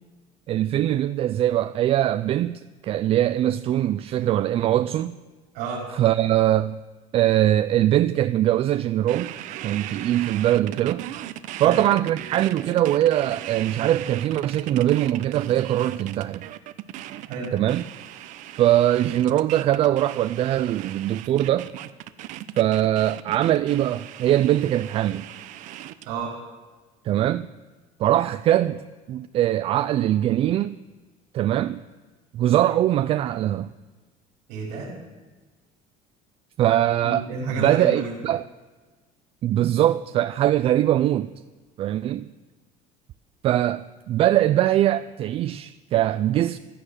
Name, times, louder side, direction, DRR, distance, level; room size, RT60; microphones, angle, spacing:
voice 1, 0.5-5.2 5.9-6.8 7.1-9.3 9.6-11.0 11.6-16.5 17.5-17.8 18.5-21.7 22.6-25.2 27.0-27.5 28.0-30.8 31.3-31.8 32.3-33.7 36.6-37.2 37.6-38.4 39.4-41.3 41.8-42.3 43.4-46.6, right 12 dB, 45° right, 0.4 m, -22 dB
voice 2, 5.5-5.9 11.6-11.8 17.2-17.5 26.1-26.3 34.5-34.9 37.0-38.1, right 4 dB, 90° right, 5.2 m, -30 dB
sound 1, 9.1-26.1, right 13 dB, 65° right, 0.8 m, -38 dB
16.0 x 12.0 x 6.5 m
cardioid pair, 140°, 14 cm